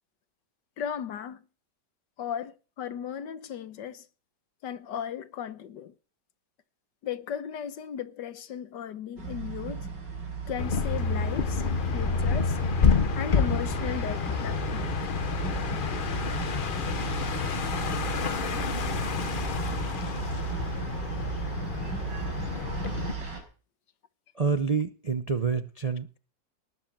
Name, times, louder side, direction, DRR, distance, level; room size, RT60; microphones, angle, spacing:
voice 1, 0.8-1.5 2.2-4.1 4.6-5.9 7.0-9.9 10.5-11.6 11.9-12.6 13.1-14.9 23.2-23.4, left 8 dB, 75° left, 1.6 m, -36 dB
sound 1, 9.2-23.4, right 6 dB, 75° right, 6.1 m, -35 dB
sound 2, 10.6-23.1, left 5 dB, 45° left, 0.7 m, -29 dB
voice 2, 24.3-26.2, right 5 dB, 40° right, 0.5 m, -28 dB
19.0 x 7.5 x 7.3 m
omnidirectional pair, 1.9 m